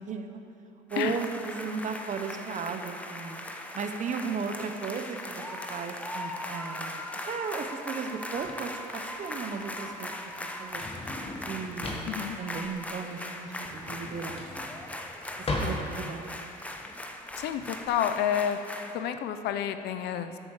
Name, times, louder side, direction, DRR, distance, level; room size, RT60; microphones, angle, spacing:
voice 1, 0.1-0.4 0.9-3.4 3.7-8.8 9.2-10.1 10.4-10.8 11.5-14.8 15.6-16.5, right 5 dB, 45° right, 6 dB, 1.0 m, -36 dB
sound 1, 0.9-19.0, left 1 dB, 10° left, 0.9 m, -39 dB
Drawer open or close, 8.3-17.9, left 2 dB, 35° left, 1.7 m, -38 dB
voice 2, 12.1-12.4 17.4-18.6 18.9-20.4, left 9 dB, 80° left, 9 dB, 0.7 m, -29 dB
13.0 x 8.3 x 4.9 m, 2.7 s
cardioid pair, 110°, 17 cm